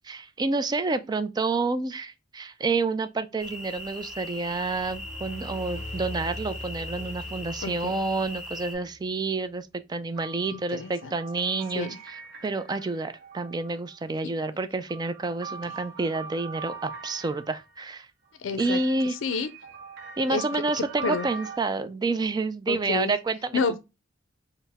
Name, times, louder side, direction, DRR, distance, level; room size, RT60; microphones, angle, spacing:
voice 1, 0.0-18.1 18.6-19.2 20.2-23.6, right 3 dB, 20° right, 0.3 m, -29 dB
sound 1, 3.4-8.7, left 1 dB, 5° right, 1.0 m, -40 dB
sound 2, 4.4-9.1, left 2 dB, 40° left, 0.7 m, -41 dB
voice 2, 7.6-7.9 10.5-11.2 11.7-12.0 18.4-18.8 19.1-19.5 20.3-21.3 22.7-23.1 23.5-23.8, left 4 dB, 80° left, 0.4 m, -30 dB
sound 3, 10.1-13.9 14.6-17.7 18.6-21.6, right 5 dB, 60° right, 0.7 m, -42 dB
4.4 x 2.0 x 3.4 m
head